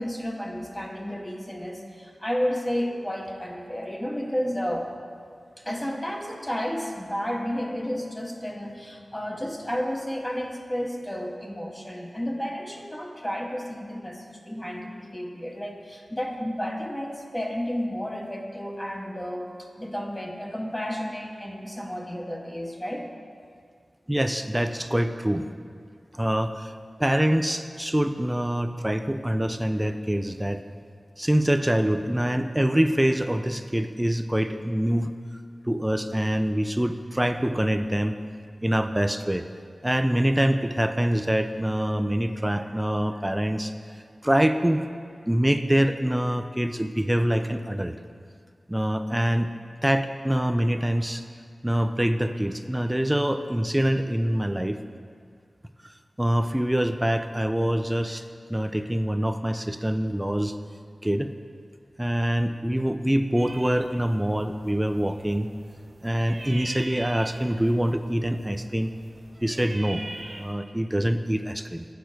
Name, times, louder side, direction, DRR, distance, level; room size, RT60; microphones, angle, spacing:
voice 1, 0.0-4.9 5.6-23.1, equal, 20° left, 1 dB, 0.9 m, -32 dB
voice 2, 24.1-25.5 26.1-26.7 27.0-30.6 31.2-35.1 35.7-38.1 38.6-39.4 39.8-43.7 44.2-44.9 45.3-48.0 48.7-49.5 49.8-51.2 51.6-54.8 55.8-58.2 58.5-60.5 61.0-61.3 62.0-65.5 66.0-68.9 69.4-70.0 70.3-71.9, right 1 dB, 15° right, 9 dB, 0.4 m, -25 dB
sound 1, 63.3-70.5, right 2 dB, 50° right, 0.7 m, -42 dB
8.3 x 4.6 x 6.1 m, 2.1 s
cardioid pair, 50°, 0 cm